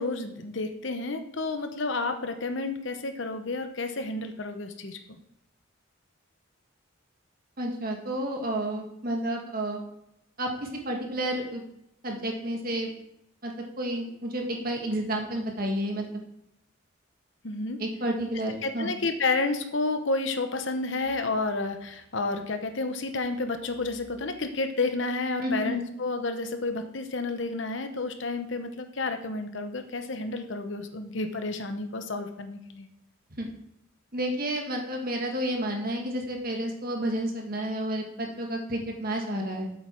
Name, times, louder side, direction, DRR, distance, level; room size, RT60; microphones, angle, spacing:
voice 1, 0.0-5.2 17.4-17.8 18.6-32.9, left 3 dB, 60° left, 7 dB, 0.9 m, -30 dB
voice 2, 7.6-9.8 10.4-11.6 12.0-12.9 13.4-16.1 17.8-18.9 25.4-25.7 33.4-33.5 34.1-39.7, right 1 dB, 45° right, 2 dB, 1.7 m, -30 dB
8.0 x 7.9 x 4.5 m, 0.78 s
head